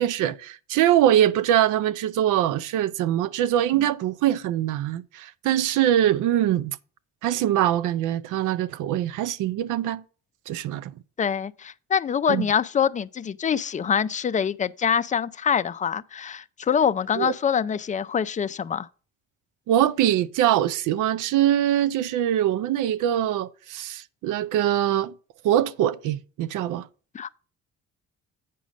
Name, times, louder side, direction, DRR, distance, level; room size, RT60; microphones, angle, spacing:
voice 1, 0.0-6.8 7.2-10.0 10.5-10.9 12.3-12.5 17.2-17.3 19.7-25.1 25.4-26.9, right 11 dB, 85° right, 0.5 m, -23 dB
voice 2, 11.2-18.9 27.1-27.4, left 7 dB, 25° left, 0.4 m, -25 dB
8.5 x 5.0 x 5.1 m
cardioid pair, 90°, 30 cm